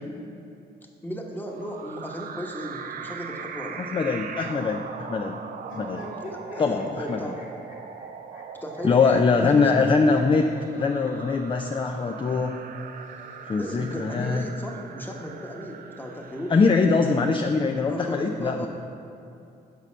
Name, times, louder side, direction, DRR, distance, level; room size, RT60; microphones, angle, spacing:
voice 1, 1.0-3.8 6.3-7.6 8.6-9.9 13.6-16.5 17.9-18.7, equal, 10° left, 0 dB, 1.2 m, -35 dB
sound 1, 1.5-17.2, right 6 dB, 55° right, 0.5 m, -40 dB
voice 2, 3.8-4.8 5.1-5.4 5.7-6.1 6.6-7.3 8.8-10.4 10.7-12.5 13.5-14.4 16.5-18.7, left 4 dB, 30° left, 4 dB, 0.5 m, -22 dB
sound 2, 5.6-11.8 12.8-13.9, left 2 dB, 50° left, 1.8 m, -45 dB
6.5 x 5.3 x 6.2 m, 2.6 s
cardioid pair, 70°, 17 cm